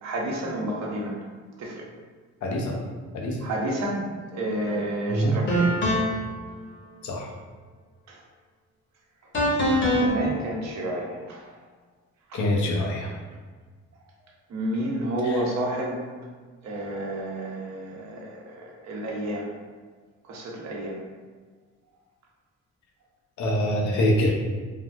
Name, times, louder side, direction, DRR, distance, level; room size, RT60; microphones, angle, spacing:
voice 1, 0.0-1.2 1.6-1.8 3.4-4.0 4.3-5.7 8.1-8.2 9.9-11.4 12.3-12.4 14.5-16.0 16.6-19.5 20.3-21.0, right 1 dB, 65° right, -1 dB, 0.8 m, -30 dB
voice 2, 2.4-2.7 3.1-3.4 5.1-5.3 7.0-7.3 12.3-13.1 15.2-15.4 23.4-24.3, left 1 dB, 75° left, -1 dB, 0.7 m, -24 dB
sound 1, 4.7-4.8 5.5-6.3 9.3-10.1, equal, 40° left, 1.0 m, -23 dB
3.3 x 2.4 x 2.3 m, 1.5 s
cardioid pair, 90°, 30 cm